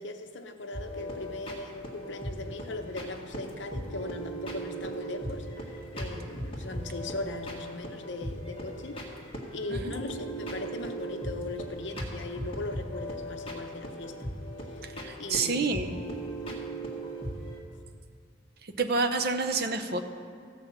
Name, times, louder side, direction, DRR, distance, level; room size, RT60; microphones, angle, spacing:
voice 1, 0.0-9.0 9.5-14.2 15.2-15.7 16.5-16.7, left 2 dB, 65° left, 6 dB, 0.8 m, -39 dB
sound 1, 0.7-17.6, right 1 dB, 30° left, 1.7 m, -38 dB
voice 2, 14.8-16.0 18.6-20.0, right 3 dB, 50° right, 8 dB, 0.7 m, -29 dB
15.0 x 5.9 x 7.2 m, 2.4 s
head